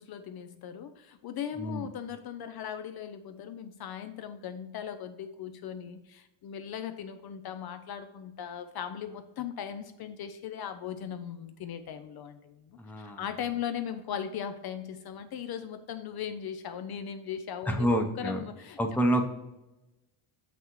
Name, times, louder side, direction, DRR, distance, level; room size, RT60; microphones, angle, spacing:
voice 1, 0.0-17.9 18.2-18.8, left 8 dB, 55° left, 9 dB, 0.5 m, -38 dB
voice 2, 1.6-1.9 12.8-13.2 17.7-18.4 18.8-19.3, equal, 5° left, 3 dB, 0.7 m, -28 dB
6.9 x 6.0 x 3.0 m, 1.0 s
cardioid pair, 145°, 47 cm